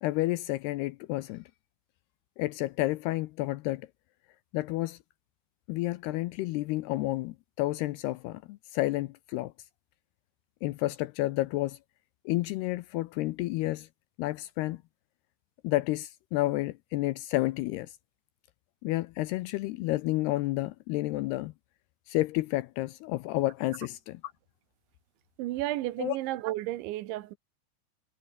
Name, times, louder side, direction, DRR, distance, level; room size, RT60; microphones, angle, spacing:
voice 1, 0.0-1.4 2.4-3.9 4.5-5.0 5.7-9.5 10.6-11.8 12.3-13.9 14.2-14.8 15.6-17.9 18.8-21.5 22.1-24.2 26.0-26.2, left 18 dB, 80° left, 2.4 m, -30 dB
voice 2, 25.4-27.4, right 16 dB, 85° right, 3.5 m, -32 dB
omnidirectional pair, 5.2 m